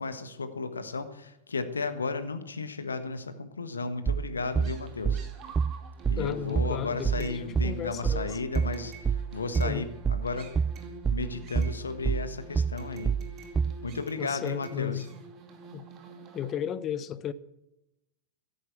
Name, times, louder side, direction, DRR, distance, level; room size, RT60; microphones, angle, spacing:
voice 1, 0.0-5.2 6.1-10.5 11.1-13.1 13.8-15.1, left 4 dB, 75° left, 1.4 m, -34 dB
sound 1, 4.1-13.9, right 6 dB, 20° right, 0.4 m, -28 dB
sound 2, 4.4-16.5, right 4 dB, 35° right, 2.6 m, -47 dB
voice 2, 6.1-8.3 9.5-9.8 14.2-15.1 15.7-15.9 16.3-17.3, left 9 dB, 30° left, 0.9 m, -34 dB
13.5 x 11.0 x 7.8 m
figure-of-eight pair, 90°, 0 cm